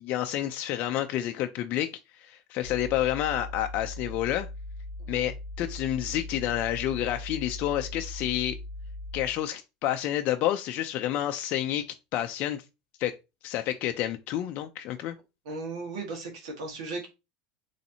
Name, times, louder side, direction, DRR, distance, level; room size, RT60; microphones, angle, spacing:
voice 1, 0.0-1.9 2.2-4.5 5.1-8.6 9.1-11.9 12.1-12.6 13.0-13.2 13.4-15.2, left 12 dB, 50° left, 0.4 m, -29 dB
sound 1, 2.6-9.4, left 1 dB, 5° left, 1.3 m, -39 dB
voice 2, 15.4-17.1, right 3 dB, 80° right, 1.5 m, -36 dB
4.1 x 3.2 x 2.7 m
supercardioid pair, 110°, 3 cm